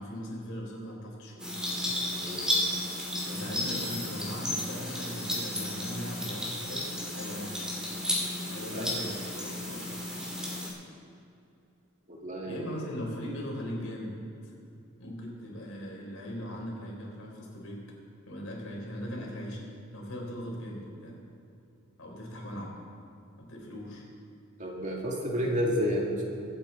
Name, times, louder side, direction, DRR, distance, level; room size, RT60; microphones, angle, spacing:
voice 1, 0.0-1.7 3.3-7.7 8.5-10.1 12.5-14.2 14.4-14.5 15.0-17.8 18.3-19.6 19.9-21.2 22.0-22.7 23.4-24.0, equal, 90° left, -2 dB, 3.8 m, -39 dB
sound 1, 1.4-10.7, left 1 dB, 5° right, 2.5 m, -33 dB
voice 2, 2.2-2.5 8.7-9.0 12.1-12.9 24.6-26.2, equal, 40° right, -2 dB, 2.3 m, -31 dB
23.5 x 8.5 x 4.0 m, 2.7 s
head